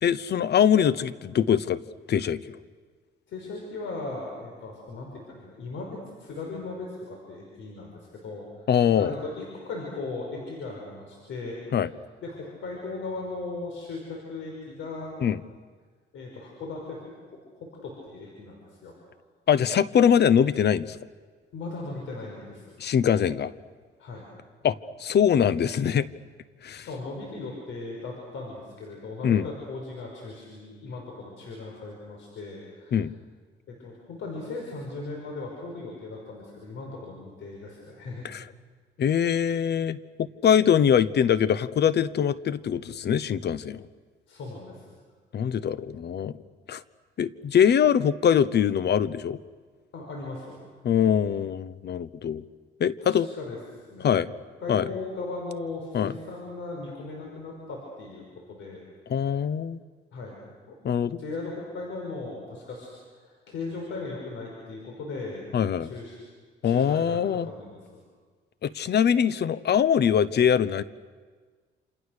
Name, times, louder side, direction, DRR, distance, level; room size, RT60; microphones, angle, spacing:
voice 1, 0.0-1.8 2.1-2.6 8.7-9.1 11.7-11.9 15.2-15.4 19.5-21.0 22.8-23.5 24.6-26.1 26.6-26.9 29.2-29.5 32.9-33.1 38.2-38.4 39.0-43.9 45.3-46.3 46.7-46.8 47.2-49.4 50.8-52.4 52.8-53.3 54.0-54.3 54.7-54.8 55.9-56.1 59.1-59.8 60.8-61.2 65.5-65.9 66.6-67.5 68.6-70.8, left 8 dB, 55° left, 17 dB, 0.9 m, -23 dB
voice 2, 3.3-8.5 9.0-11.8 12.2-15.2 16.1-17.4 17.8-18.9 21.5-22.8 24.0-24.3 26.7-33.0 33.7-38.3 44.3-45.0 49.9-50.6 53.0-53.6 53.9-54.2 54.6-58.8 60.1-60.4 60.7-60.8 61.2-65.4 65.8-66.2 66.6-67.2 67.4-68.0, left 3 dB, 75° left, 0 dB, 5.6 m, -38 dB
28.0 x 27.5 x 6.6 m, 1.5 s
cardioid pair, 90°, 20 cm